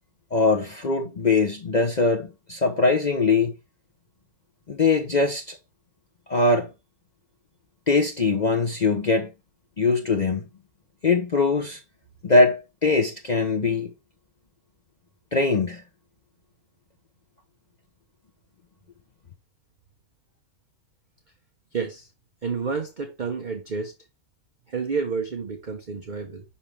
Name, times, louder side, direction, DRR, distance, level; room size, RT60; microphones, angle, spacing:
voice 1, 0.3-3.5 4.7-5.6 6.3-6.7 7.9-9.3 9.8-10.4 11.0-11.8 12.2-13.9 15.3-15.8, left 3 dB, 40° left, 0.7 m, -22 dB
voice 2, 21.7-22.1 22.4-24.0 24.7-26.4, right 5 dB, 40° right, 0.9 m, -30 dB
5.8 x 5.7 x 3.3 m
omnidirectional pair, 1.6 m